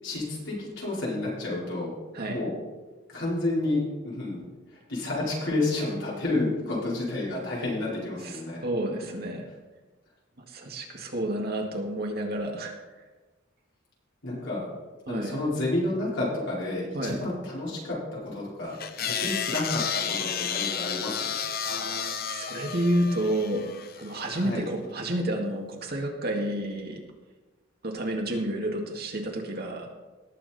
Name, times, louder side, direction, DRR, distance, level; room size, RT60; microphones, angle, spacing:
voice 1, 0.0-1.9 2.3-2.6 3.1-4.4 4.9-8.6 14.2-14.7 15.1-19.8 20.2-21.2 24.3-24.7, left 2 dB, 60° left, -6 dB, 4.8 m, -30 dB
voice 2, 8.2-9.5 10.5-12.8 15.1-15.4 16.9-17.2 21.7-23.6 24.0-27.0 27.8-29.9, right 1 dB, 50° right, 1 dB, 2.0 m, -30 dB
sound 1, 18.8-24.2, left 7 dB, 45° left, 0.7 m, -32 dB
18.5 x 7.4 x 4.2 m, 1.2 s
head